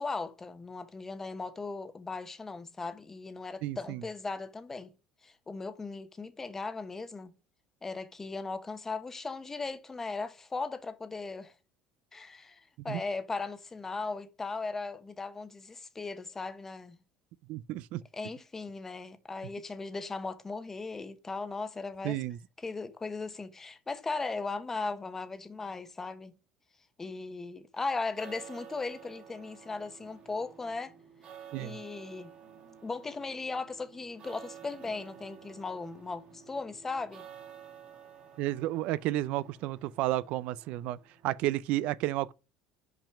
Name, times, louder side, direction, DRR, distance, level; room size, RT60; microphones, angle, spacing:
voice 1, 0.0-4.9 5.2-7.3 7.8-11.5 12.1-17.0 18.1-22.2 22.6-26.3 27.0-30.9 31.6-32.3 32.8-37.2, left 3 dB, 15° left, 0.9 m, -37 dB
voice 2, 3.6-4.0 12.9-13.0 17.5-18.0 22.0-22.4 31.5-31.8 38.4-41.0 41.2-42.3, right 15 dB, 65° right, 0.4 m, -32 dB
sound 1, 27.9-41.5, right 8 dB, 45° right, 2.0 m, -52 dB
6.0 x 5.1 x 5.8 m
cardioid pair, 135°, 2 cm